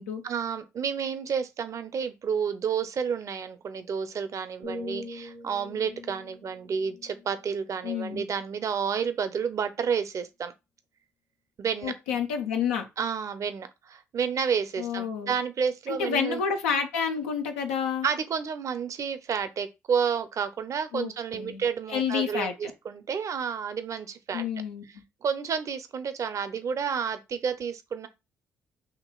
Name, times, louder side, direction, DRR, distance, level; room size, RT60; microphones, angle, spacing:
voice 1, 0.2-10.5 11.6-11.9 13.0-16.4 18.0-24.5 25.2-28.1, right 6 dB, 50° right, 0.6 m, -30 dB
sound 1, 4.6-8.5 9.0-9.3, left 1 dB, 80° right, 1.1 m, -43 dB
voice 2, 7.8-8.2 11.8-12.8 14.8-15.3 15.9-18.1 20.9-21.6 21.9-22.7 24.3-24.8, left 7 dB, 90° left, 0.6 m, -29 dB
5.8 x 2.9 x 2.3 m
hypercardioid pair, 50°, 7 cm